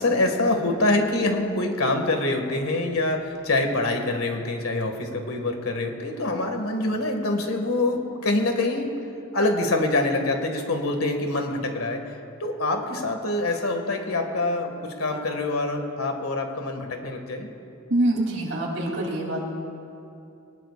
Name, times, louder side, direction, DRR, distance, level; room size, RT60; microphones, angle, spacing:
voice 1, 0.0-9.0 9.3-12.0 12.4-17.5, left 2 dB, 90° left, 4 dB, 2.0 m, -25 dB
voice 2, 17.9-19.4, right 1 dB, 65° right, -2 dB, 3.2 m, -25 dB
23.5 x 19.5 x 2.5 m, 2.7 s
head